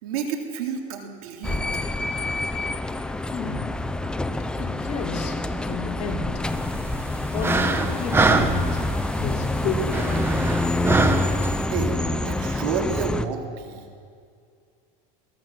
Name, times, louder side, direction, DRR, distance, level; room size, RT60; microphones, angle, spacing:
voice 1, 0.0-1.6 11.7-12.0 12.2-13.8, right 6 dB, 80° right, 2 dB, 3.6 m, -30 dB
sound 1, 1.4-13.3, left 2 dB, 5° left, 0.6 m, -27 dB
voice 2, 3.2-3.8 4.6-5.3 5.6-6.4 7.3-8.8 9.2-10.6, left 4 dB, 40° left, -1 dB, 3.4 m, -31 dB
sound 2, 6.5-11.7, right 3 dB, 10° right, 1.0 m, -25 dB
22.5 x 17.0 x 7.7 m, 2.2 s
cardioid pair, 155°, 18 cm